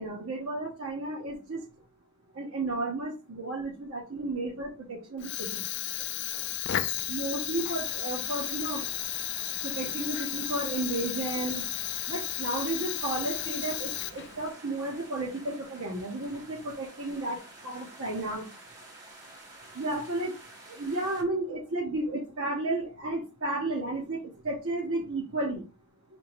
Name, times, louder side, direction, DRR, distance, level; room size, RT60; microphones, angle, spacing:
voice 1, 0.0-1.6 2.3-5.6 7.1-8.9 9.6-11.6 12.1-18.4 19.7-20.3 20.7-24.2 24.4-25.6, right 2 dB, 70° right, -3 dB, 1.1 m, -33 dB
Fire, 5.2-14.5, left 12 dB, 50° left, 0.3 m, -34 dB
sound 1, 7.7-21.2, right 2 dB, 45° right, 2.3 m, -50 dB
3.6 x 3.0 x 4.6 m, 0.32 s
head